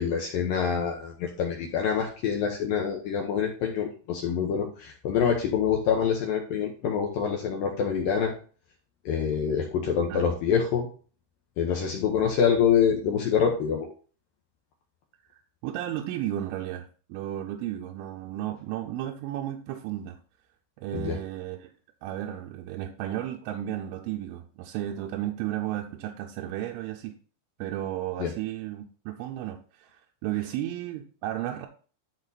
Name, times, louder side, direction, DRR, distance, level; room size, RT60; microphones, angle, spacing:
voice 1, 0.0-8.3 9.1-10.9 11.6-13.9 20.9-21.2 28.2-28.3, left 7 dB, 75° left, 0 dB, 2.1 m, -26 dB
voice 2, 15.3-20.2 20.8-21.7 22.0-27.2 27.6-31.7, right 12 dB, 90° right, 1 dB, 3.3 m, -34 dB
12.0 x 4.4 x 4.1 m, 0.39 s
omnidirectional pair, 5.5 m